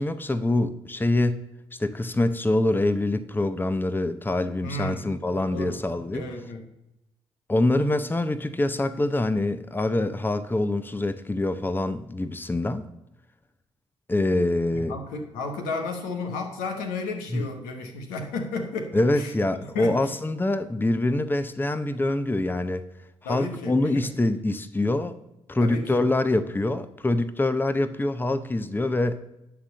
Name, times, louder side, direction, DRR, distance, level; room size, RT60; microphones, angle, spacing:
voice 1, 0.0-1.4 1.8-6.3 7.5-12.9 14.1-15.0 17.3-17.5 18.9-22.8 23.3-25.2 25.5-29.2, left 2 dB, 15° left, 0.7 m, -25 dB
voice 2, 4.6-5.0 5.4-5.8 6.1-6.6 14.7-19.3 19.6-20.0 23.2-24.1 25.6-26.0, left 3 dB, 80° left, 1.2 m, -33 dB
11.0 x 3.8 x 7.6 m
hypercardioid pair, 45°, 14 cm